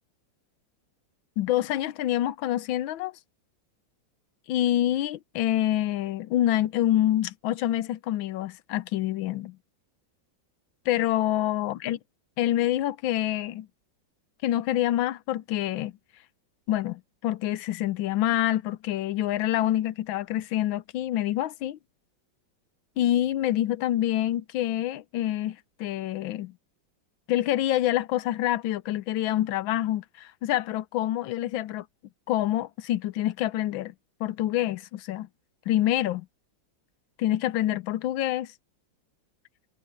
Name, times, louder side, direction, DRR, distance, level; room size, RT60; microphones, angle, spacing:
voice 1, 1.4-3.1 4.5-9.6 10.9-12.0 12.4-13.7 14.4-15.9 16.7-21.8 23.0-26.5 27.3-31.8 32.3-33.9 34.2-35.3 35.7-36.3 37.2-38.5, left 13 dB, 85° left, 1.5 m, -26 dB
omnidirectional pair, 2.1 m